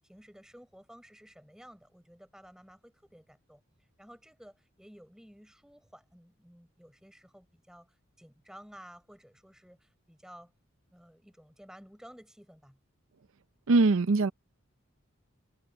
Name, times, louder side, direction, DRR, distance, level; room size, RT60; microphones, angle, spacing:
voice 1, 0.0-3.6 4.0-10.5 10.9-12.8, equal, 5° right, 5.0 m, -54 dB
voice 2, 13.7-14.3, right 3 dB, 75° right, 0.6 m, -22 dB
head